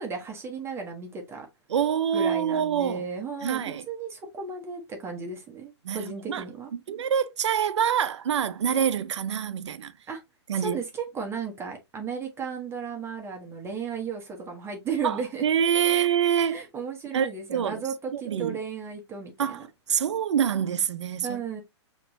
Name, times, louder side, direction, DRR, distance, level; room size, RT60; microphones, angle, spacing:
voice 1, 0.0-1.5 2.1-6.7 10.1-10.2 10.5-15.4 15.9-16.1 16.5-20.0 21.2-21.6, right 5 dB, 15° right, 1.1 m, -35 dB
voice 2, 1.7-3.0 3.4-3.8 5.8-6.4 6.7-9.9 10.5-10.8 15.0-16.6 17.1-17.8 18.1-18.6 19.4-19.6 19.9-21.4, right 8 dB, 75° right, 0.6 m, -26 dB
5.8 x 3.1 x 2.6 m
hypercardioid pair, 125°, 15 cm